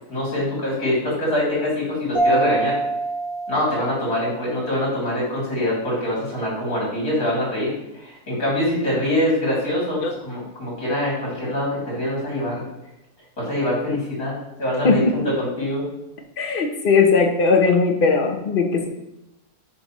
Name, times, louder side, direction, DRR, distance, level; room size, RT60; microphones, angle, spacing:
voice 1, 0.1-2.8 3.5-12.7 13.4-14.3 14.6-15.8, left 1 dB, 70° left, -6 dB, 3.6 m, -24 dB
Mallet percussion, 2.1-4.7, right 2 dB, 15° right, 1.5 m, -25 dB
voice 2, 14.8-15.3 16.4-18.9, left 4 dB, 40° left, 3 dB, 1.0 m, -18 dB
9.8 x 5.2 x 3.1 m, 0.86 s
omnidirectional pair, 1.6 m